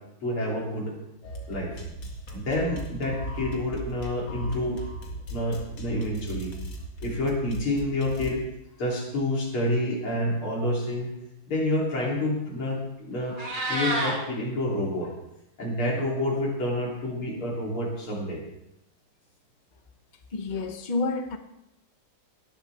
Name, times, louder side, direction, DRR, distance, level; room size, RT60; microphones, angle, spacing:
voice 1, 0.2-0.9 1.5-1.8 2.3-4.8 5.3-6.5 7.0-8.4 8.8-11.1 11.5-13.4 13.6-15.1 15.6-18.4, left 1 dB, 90° left, -3 dB, 4.1 m, -28 dB
sound 1, 1.2-8.3, right 1 dB, 60° left, 2.7 m, -38 dB
Meow, 13.2-14.1, right 1 dB, 90° right, 4.3 m, -28 dB
voice 2, 20.3-21.4, left 3 dB, 40° left, 6 dB, 0.7 m, -29 dB
18.0 x 11.5 x 3.5 m, 0.85 s
omnidirectional pair, 2.3 m